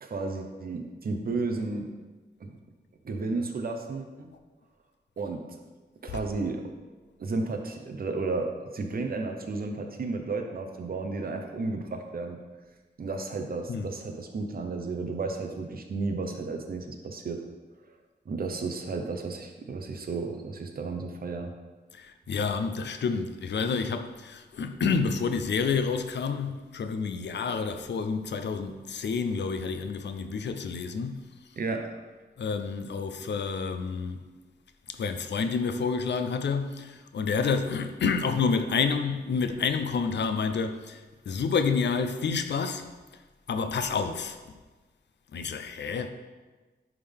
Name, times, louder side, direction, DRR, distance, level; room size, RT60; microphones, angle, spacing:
voice 1, 0.0-1.9 2.4-2.6 3.0-4.3 5.2-5.4 6.0-6.6 7.2-12.4 13.0-17.4 18.3-21.5 31.6-32.0, right 3 dB, 60° right, 0.8 m, -33 dB
voice 2, 21.9-31.2 32.4-34.2 34.9-42.9 43.5-44.4 45.3-46.1, left 5 dB, 90° left, 0.5 m, -29 dB
10.5 x 3.7 x 3.5 m
wide cardioid pair, 120°, 18 cm